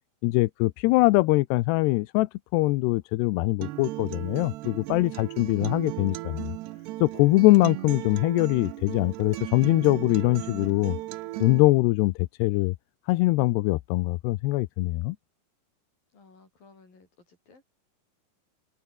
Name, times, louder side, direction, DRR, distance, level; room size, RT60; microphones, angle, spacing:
voice 1, 0.2-6.5 7.0-11.0 11.4-12.8 13.1-15.2, left 20 dB, 85° left, 2.8 m, -23 dB
Acoustic guitar, 3.6-11.6, right 17 dB, 85° right, 3.0 m, -36 dB
voice 2, 16.1-17.6, left 4 dB, 55° left, 9.7 m, -56 dB
open air
omnidirectional pair, 4.9 m